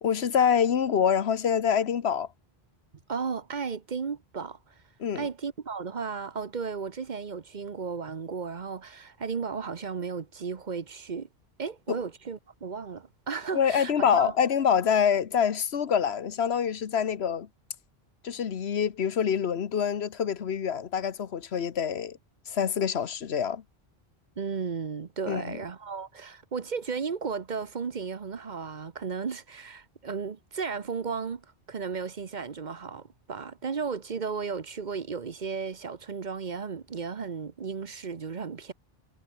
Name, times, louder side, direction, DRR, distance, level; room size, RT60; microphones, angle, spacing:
voice 1, 0.0-2.3 5.0-5.3 11.9-12.0 13.5-17.5 18.2-22.2 22.5-23.6 25.3-25.6, left 7 dB, 80° left, 1.3 m, -26 dB
voice 2, 3.1-4.8 5.1-11.3 11.6-14.3 24.4-38.7, right 5 dB, 50° right, 1.0 m, -34 dB
omnidirectional pair, 1.1 m